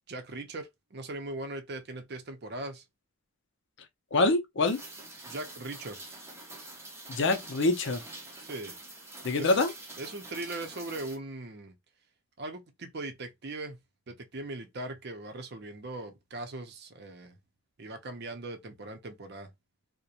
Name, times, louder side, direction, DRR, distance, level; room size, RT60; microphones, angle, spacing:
voice 1, 0.1-2.8 5.3-6.0 8.4-8.8 9.4-9.7 10.0-11.8 12.4-13.8 14.1-17.3 17.8-19.5, right 2 dB, 50° right, 0.6 m, -40 dB
voice 2, 4.1-4.8 7.1-8.0 9.2-9.7, left 2 dB, 60° left, 0.5 m, -25 dB
Rain, 4.6-11.2, right 2 dB, 10° right, 0.6 m, -45 dB
2.4 x 2.1 x 2.8 m
head